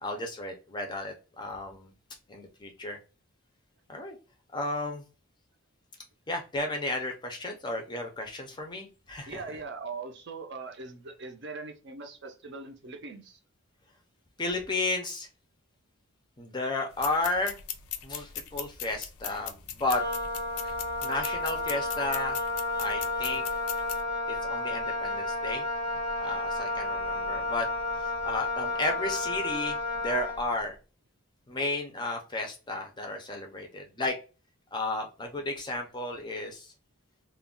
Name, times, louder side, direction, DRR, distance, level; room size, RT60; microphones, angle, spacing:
voice 1, 0.0-1.9 2.3-3.0 3.9-4.2 4.5-5.0 6.3-9.4 14.4-15.3 16.4-17.6 18.0-20.0 20.6-20.7 21.0-22.4 22.8-23.4 24.4-25.6 26.2-27.7 28.0-30.8 31.5-34.1 34.7-36.7, left 2 dB, 20° left, 2 dB, 0.5 m, -33 dB
voice 2, 9.3-13.4, right 4 dB, 50° right, 5 dB, 0.5 m, -41 dB
sound 1, 16.9-24.0, left 9 dB, 85° left, 0.5 m, -40 dB
Wind instrument woodwind instrument, 19.9-30.5, left 2 dB, 5° right, 0.8 m, -31 dB
2.3 x 2.1 x 3.6 m, 0.33 s
head